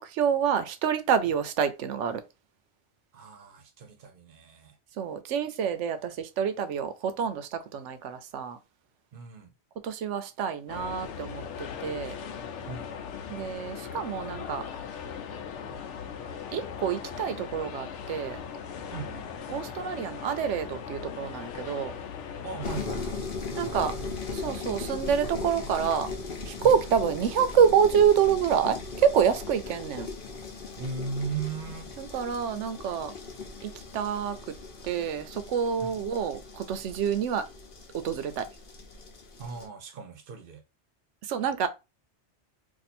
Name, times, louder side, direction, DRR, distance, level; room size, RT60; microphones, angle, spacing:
voice 1, 0.0-2.2 5.0-8.6 9.8-12.2 13.3-14.7 16.5-18.4 19.5-21.9 23.6-23.9 24.3-26.1 26.5-30.1 32.0-33.1 33.6-34.5 34.8-37.5 37.9-38.5 41.2-41.7, right 7 dB, 85° right, 0.9 m, -27 dB
voice 2, 3.1-4.8 9.1-9.5 12.7-12.9 18.9-19.3 22.4-23.2 23.5-24.1 24.4-24.6 26.6-26.8 30.8-31.9 35.8-36.0 39.4-40.6, right 5 dB, 55° right, 0.8 m, -38 dB
sound 1, 10.7-22.8, left 7 dB, 80° left, 0.9 m, -39 dB
sound 2, 22.6-39.7, left 4 dB, 55° left, 0.8 m, -38 dB
2.6 x 2.5 x 4.2 m
omnidirectional pair, 1.2 m